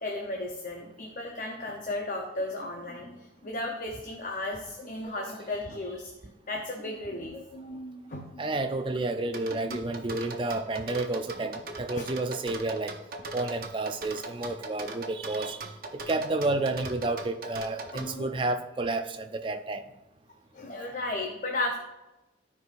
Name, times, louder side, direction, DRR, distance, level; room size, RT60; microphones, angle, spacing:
voice 1, 0.0-6.1 6.5-8.4 9.7-9.8 12.0-12.1 17.9-18.3 20.5-21.8, left 2 dB, 45° left, 0 dB, 0.8 m, -35 dB
voice 2, 8.4-12.9 13.3-15.6 15.9-19.9, right 2 dB, 25° right, 7 dB, 0.4 m, -30 dB
sound 1, 9.3-18.1, right 3 dB, 50° right, 0.8 m, -39 dB
13.0 x 4.7 x 2.5 m, 0.98 s
head